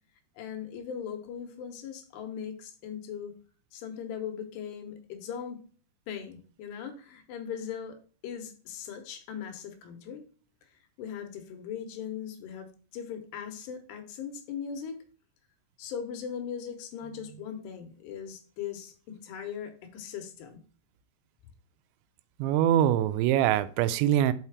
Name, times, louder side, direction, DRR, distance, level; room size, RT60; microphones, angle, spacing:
voice 1, 0.4-3.3 3.7-5.6 6.1-8.0 8.2-10.2 11.0-15.0 15.8-20.6, left 8 dB, 75° left, 2.9 m, -39 dB
voice 2, 22.4-24.3, right 11 dB, 90° right, 2.9 m, -23 dB
5.7 x 5.6 x 4.6 m
omnidirectional pair, 5.1 m